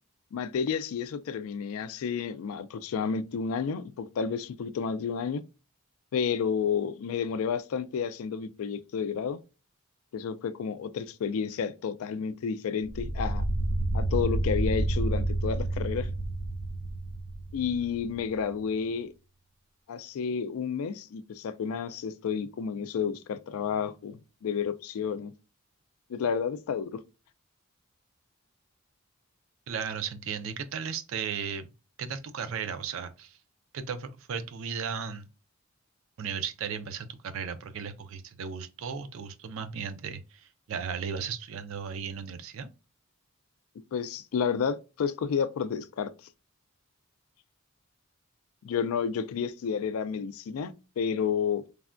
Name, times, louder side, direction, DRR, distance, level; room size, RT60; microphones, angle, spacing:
voice 1, 0.3-5.4 6.1-9.4 10.1-13.4 13.9-16.1 17.5-19.1 19.9-25.3 26.1-27.0 43.9-46.1 48.6-51.8, left 6 dB, 75° left, 0.3 m, -31 dB
sound 1, 12.8-18.1, right 1 dB, 85° right, 0.9 m, -29 dB
voice 2, 29.7-31.7 32.0-33.4 33.7-35.3 36.2-42.7, right 6 dB, 65° right, 0.4 m, -35 dB
3.3 x 2.2 x 2.4 m
head